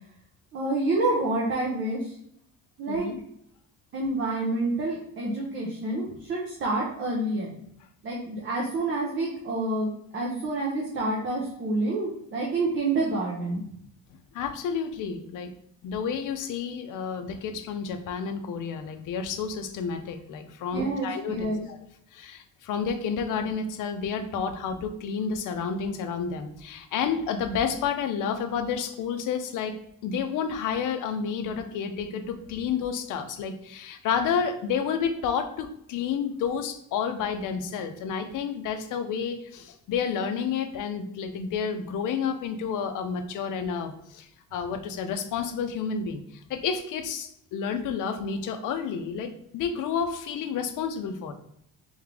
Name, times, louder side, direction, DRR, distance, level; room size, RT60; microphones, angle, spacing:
voice 1, 0.5-2.1 2.8-3.1 3.9-7.5 8.0-13.6 20.7-21.6, right 2 dB, 35° right, -3 dB, 0.8 m, -28 dB
voice 2, 2.9-3.2 14.3-15.5 15.8-21.8 22.1-29.8 30.0-51.3, left 6 dB, 65° left, 7 dB, 0.6 m, -30 dB
3.6 x 3.5 x 3.3 m, 0.72 s
cardioid pair, 165°, 34 cm